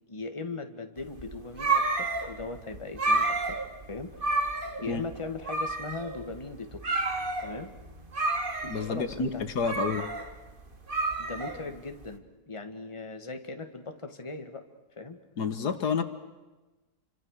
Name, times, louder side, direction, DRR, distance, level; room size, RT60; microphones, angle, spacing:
voice 1, 0.1-3.6 3.9-4.5 4.8-7.1 7.4-7.7 8.9-9.4 11.2-14.7 15.0-15.2, left 3 dB, 20° left, 6 dB, 1.9 m, -39 dB
sound 1, 1.1-12.1, right 3 dB, 35° right, 1.9 m, -30 dB
voice 2, 8.6-10.1 15.4-16.0, left 5 dB, 80° left, 9 dB, 2.1 m, -29 dB
29.5 x 25.5 x 6.6 m, 1.1 s
omnidirectional pair, 1.7 m